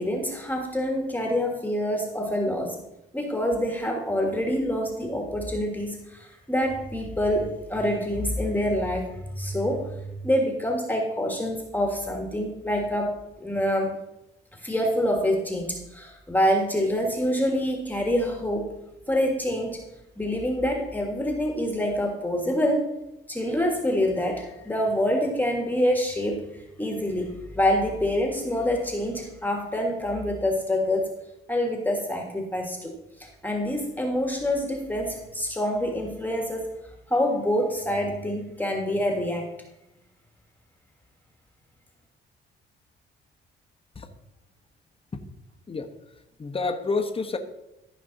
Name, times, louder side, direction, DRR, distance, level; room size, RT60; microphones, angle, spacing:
voice 1, 0.0-2.8 3.1-14.0 14.5-18.7 19.1-19.9 20.2-23.0 23.3-31.1 31.5-36.7 37.1-39.5, equal, 10° left, 2 dB, 1.7 m, -26 dB
voice 2, 45.7-47.4, left 3 dB, 30° left, 6 dB, 1.1 m, -30 dB
14.0 x 5.3 x 4.0 m, 0.90 s
cardioid pair, 90°, 20 cm